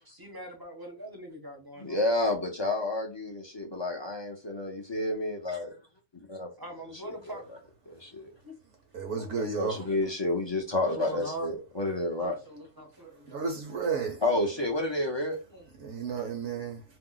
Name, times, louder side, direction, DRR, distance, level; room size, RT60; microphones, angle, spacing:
voice 1, 0.0-2.0 6.6-7.4 8.4-8.6 9.1-9.6 10.9-11.5 12.2-13.6 14.3-14.6 15.5-15.7 16.0-16.4, right 1 dB, 25° right, 0.5 m, -42 dB
voice 2, 1.8-5.8 6.1-6.5 7.3-7.4 7.9-8.3 9.4-12.3 14.2-15.4, left 2 dB, 40° left, 0.3 m, -30 dB
voice 3, 8.9-9.8 13.3-14.2 15.8-16.8, right 5 dB, 65° right, 1.0 m, -32 dB
2.7 x 2.0 x 3.7 m
omnidirectional pair, 1.4 m